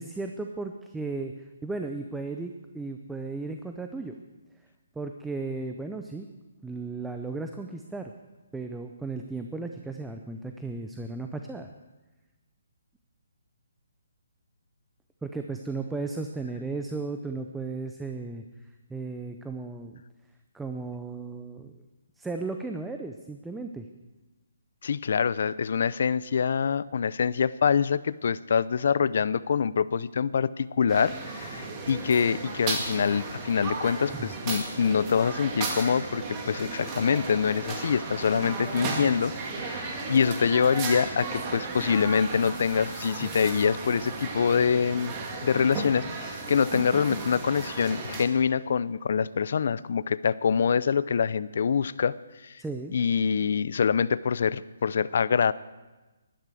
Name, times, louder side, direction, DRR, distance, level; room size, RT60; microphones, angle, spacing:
voice 1, 0.0-4.1 5.0-6.3 6.6-8.1 8.5-11.7 15.2-18.4 18.9-20.0 20.5-21.7 22.2-23.9 34.1-34.3 43.2-43.3 52.6-52.9, right 3 dB, 5° right, 5 dB, 0.6 m, -35 dB
voice 2, 24.8-45.1 45.4-52.1 52.4-52.5 52.9-55.5, left 6 dB, 60° left, 18 dB, 0.5 m, -25 dB
sound 1, 30.9-48.2, right 3 dB, 25° right, 2.0 m, -35 dB
12.0 x 11.5 x 7.7 m, 1.1 s
hypercardioid pair, 160°, 0 cm